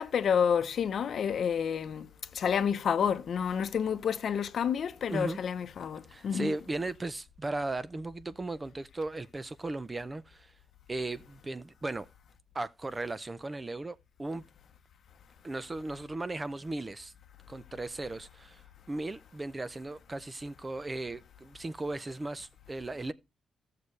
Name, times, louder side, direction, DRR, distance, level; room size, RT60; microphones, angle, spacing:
voice 1, 0.0-2.1 2.3-6.5, left 7 dB, 55° left, 0.7 m, -29 dB
voice 2, 6.1-10.5 10.9-12.1 12.5-14.4 15.4-17.1 17.5-18.6 18.9-23.1, right 2 dB, 20° right, 0.4 m, -36 dB
16.0 x 6.7 x 3.2 m
cardioid pair, 140°, 0 cm